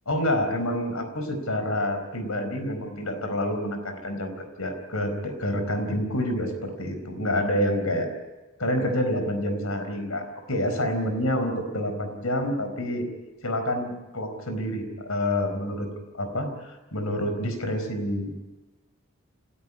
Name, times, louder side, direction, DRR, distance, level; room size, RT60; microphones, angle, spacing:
voice 1, 0.1-4.3 4.6-8.1 8.6-13.1 13.4-15.9 16.1-18.3, left 1 dB, 80° left, 7 dB, 4.4 m, -28 dB
28.5 x 13.0 x 9.9 m, 1.2 s
head